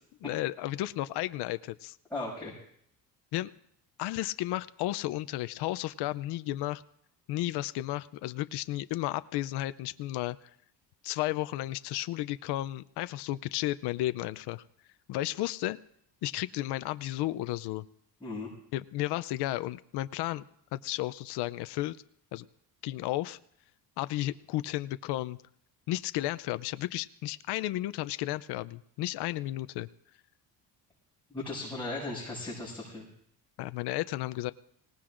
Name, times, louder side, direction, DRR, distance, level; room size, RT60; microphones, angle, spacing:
voice 1, 0.2-2.0 3.3-3.5 4.0-6.8 7.3-10.5 11.0-14.6 15.1-15.8 16.2-17.8 18.7-20.4 20.7-22.0 22.3-22.5 22.8-23.4 24.0-25.4 25.9-29.9 33.6-34.5, left 16 dB, 75° left, 14 dB, 0.6 m, -33 dB
voice 2, 2.1-2.5 18.2-18.5 31.3-33.1, left 2 dB, 5° left, -8 dB, 6.4 m, -37 dB
25.5 x 18.0 x 2.5 m, 0.68 s
cardioid pair, 155°, 40 cm